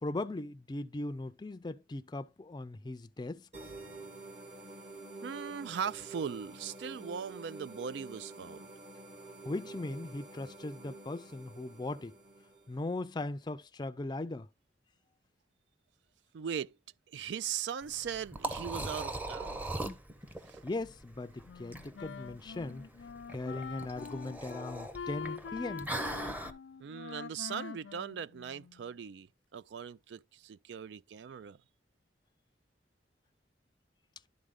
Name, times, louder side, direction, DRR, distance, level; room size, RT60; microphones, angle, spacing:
voice 1, 0.0-3.5 9.4-12.2 12.7-14.5 20.6-22.9 23.3-25.9, left 2 dB, 25° left, 0.4 m, -39 dB
sound 1, 3.5-12.9, right 2 dB, 40° right, 1.2 m, -49 dB
voice 2, 5.2-8.7 16.3-16.7 17.1-19.7 20.5-20.6 26.8-31.6, right 7 dB, 70° right, 0.3 m, -39 dB
Liquid, 17.8-26.5, right 2 dB, 10° right, 0.7 m, -40 dB
Wind instrument woodwind instrument, 21.4-28.9, left 6 dB, 80° left, 0.4 m, -45 dB
11.0 x 4.1 x 3.6 m
head